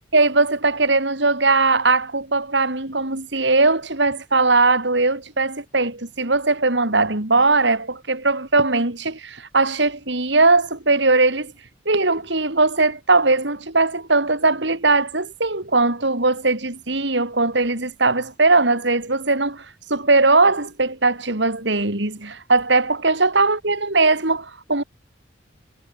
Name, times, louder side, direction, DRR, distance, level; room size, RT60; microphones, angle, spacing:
voice 1, 0.1-11.5 11.8-24.8, right 3 dB, 70° right, 3.3 m, -19 dB
head